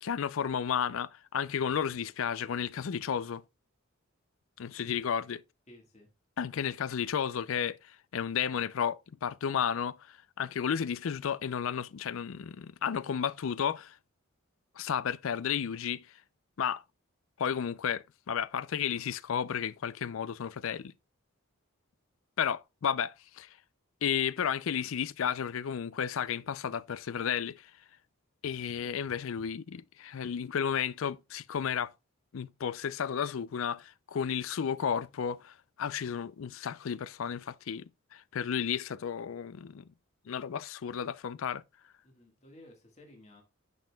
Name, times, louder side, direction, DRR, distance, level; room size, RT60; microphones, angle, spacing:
voice 1, 0.0-3.4 4.6-5.4 6.4-14.0 14.8-16.1 16.6-16.8 17.4-20.9 22.4-23.5 24.0-27.7 28.4-31.9 32.3-39.8 40.3-41.6, left 8 dB, 70° left, 0.4 m, -33 dB
voice 2, 5.7-6.1 42.0-43.4, left 1 dB, 30° left, 1.6 m, -55 dB
10.5 x 6.2 x 2.3 m
head